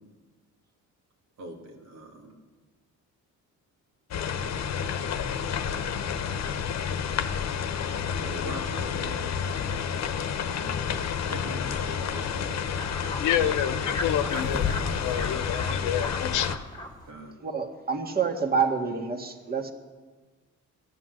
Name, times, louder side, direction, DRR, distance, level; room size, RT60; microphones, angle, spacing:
voice 1, 1.4-2.3 8.2-12.7 15.3-15.4 15.7-15.8 17.1-17.3, right 1 dB, 85° right, 1 dB, 2.6 m, -43 dB
sound 1, 4.1-16.6, left 7 dB, 60° left, 1.0 m, -30 dB
sound 2, 11.0-11.1 11.3-11.4 11.7-17.1, left 2 dB, 15° left, 2.0 m, -37 dB
voice 2, 12.8-16.5, left 10 dB, 90° left, 10 dB, 1.0 m, -29 dB
voice 3, 17.4-19.7, right 5 dB, 30° right, 4 dB, 1.8 m, -27 dB
14.0 x 10.5 x 7.7 m, 1.3 s
cardioid pair, 90°, 30 cm